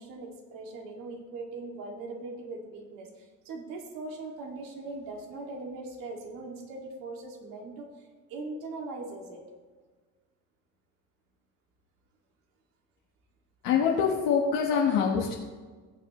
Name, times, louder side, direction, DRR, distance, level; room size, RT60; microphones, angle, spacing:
voice 1, 0.0-9.4, right 3 dB, 80° right, 2 dB, 2.2 m, -40 dB
voice 2, 13.6-15.3, left 6 dB, 80° left, -2 dB, 1.2 m, -25 dB
18.0 x 7.1 x 3.0 m, 1.5 s
cardioid pair, 120°, 33 cm